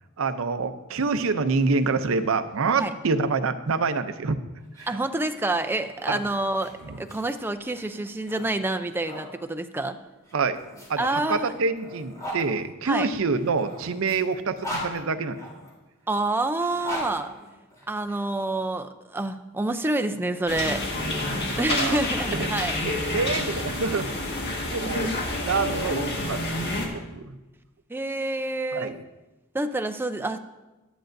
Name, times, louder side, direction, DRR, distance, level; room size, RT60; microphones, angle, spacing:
voice 1, 0.2-4.4 4.8-4.9 6.1-6.2 10.3-10.6 10.9-15.4 21.4-22.0 22.4-22.5 23.0-24.1 24.7-25.1 25.4-27.3 28.7-29.0, right 4 dB, 70° right, 10 dB, 0.6 m, -26 dB
sound 1, 4.6-9.3 10.2-12.4 13.3-15.7 16.5-18.1, equal, 15° left, 3.2 m, -39 dB
voice 2, 4.9-6.7 7.0-10.0 11.0-11.5 12.8-13.1 16.1-17.3 17.9-20.8 21.6-22.8 27.9-29.0 29.5-30.4, right 2 dB, 10° right, 7 dB, 0.4 m, -27 dB
sound 2, 20.5-26.9, left 2 dB, 50° left, 1.6 m, -29 dB
11.5 x 10.0 x 2.6 m, 1.1 s
head